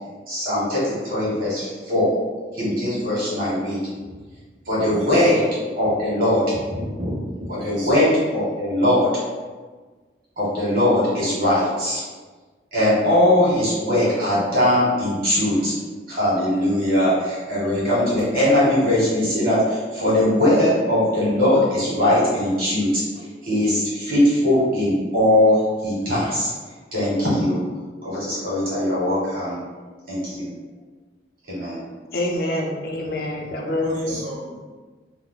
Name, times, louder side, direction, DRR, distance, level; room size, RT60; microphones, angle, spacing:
voice 1, 0.3-2.1 2.5-3.8 4.6-5.4 5.7-6.5 7.5-9.1 10.4-12.0 12.7-15.7 16.1-26.5 26.9-27.6 28.0-29.6 30.1-30.5 31.5-31.8, left 1 dB, 50° right, -8 dB, 1.3 m, -20 dB
voice 2, 4.8-5.5 6.8-8.1 33.5-34.5, equal, 90° right, -6 dB, 1.0 m, -32 dB
voice 3, 32.1-34.2, left 1 dB, 55° left, -1 dB, 0.5 m, -26 dB
2.6 x 2.3 x 3.8 m, 1.4 s
head